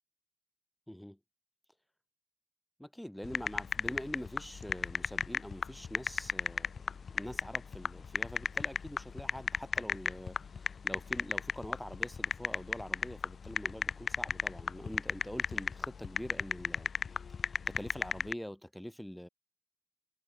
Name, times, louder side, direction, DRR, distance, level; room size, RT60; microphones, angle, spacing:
voice 1, 0.9-1.2 2.8-16.9 17.4-19.3, equal, 5° left, 4.6 m, -45 dB
sound 1, 3.2-18.3, left 6 dB, 85° left, 0.3 m, -34 dB
wide cardioid pair, 90°, 0 cm